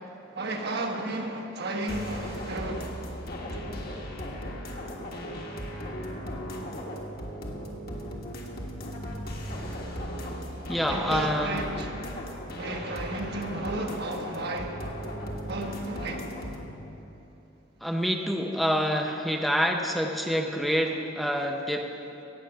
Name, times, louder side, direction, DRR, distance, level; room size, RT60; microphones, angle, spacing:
voice 1, 0.4-2.9 10.9-12.0 12.6-14.9 15.5-16.3, right 2 dB, 55° right, 3 dB, 1.2 m, -33 dB
sound 1, 1.9-16.6, equal, 55° left, 1.5 m, -37 dB
voice 2, 10.7-11.6 17.8-21.9, equal, ahead, 2 dB, 0.6 m, -27 dB
17.0 x 7.5 x 5.8 m, 3.0 s
head